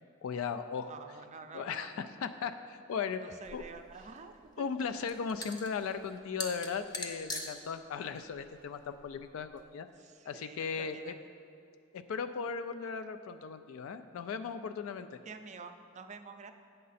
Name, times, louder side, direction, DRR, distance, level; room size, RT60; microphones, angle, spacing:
voice 1, 0.2-0.9 1.5-3.2 3.5-3.6 4.6-9.9 10.3-11.1 11.9-15.1, left 6 dB, 80° left, 10 dB, 0.3 m, -37 dB
voice 2, 0.9-1.9 3.2-4.7 9.9-11.3 15.2-16.5, right 5 dB, 35° right, 7 dB, 0.4 m, -49 dB
sound 1, 3.4-9.6, left 2 dB, 20° left, 0.7 m, -44 dB
8.5 x 6.6 x 4.1 m, 2.4 s
head